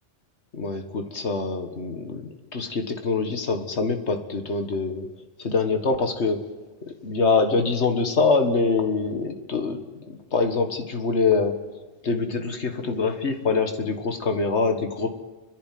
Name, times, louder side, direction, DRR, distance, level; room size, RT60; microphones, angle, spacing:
voice 1, 0.5-5.1 5.4-6.4 6.9-11.6 12.0-15.1, left 4 dB, 65° left, 6 dB, 2.0 m, -24 dB
30.0 x 11.0 x 9.3 m, 1.2 s
omnidirectional pair, 1.2 m